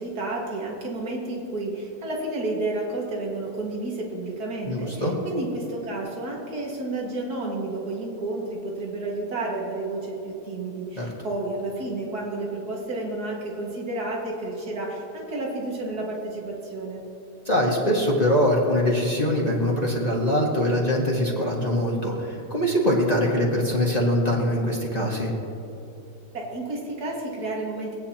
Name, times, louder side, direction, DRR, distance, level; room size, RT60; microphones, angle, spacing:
voice 1, 0.0-17.0 26.3-27.9, right 2 dB, 60° right, -2 dB, 2.4 m, -31 dB
voice 2, 4.6-5.1 11.0-11.1 17.4-25.3, equal, 25° left, -4 dB, 1.5 m, -23 dB
22.0 x 9.1 x 2.9 m, 2.9 s
omnidirectional pair, 1.9 m